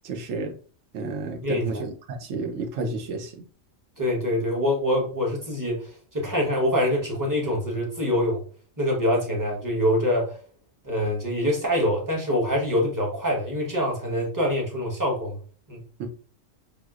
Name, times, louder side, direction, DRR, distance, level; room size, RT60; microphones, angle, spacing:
voice 1, 0.0-0.6 0.9-1.9 2.2-3.4 16.0-16.1, right 3 dB, 80° right, 4 dB, 1.0 m, -31 dB
voice 2, 1.4-1.8 4.0-8.4 8.8-10.3 10.8-15.4 15.7-15.8, equal, 20° right, -2 dB, 0.8 m, -25 dB
4.6 x 2.1 x 2.3 m, 0.42 s
omnidirectional pair, 1.3 m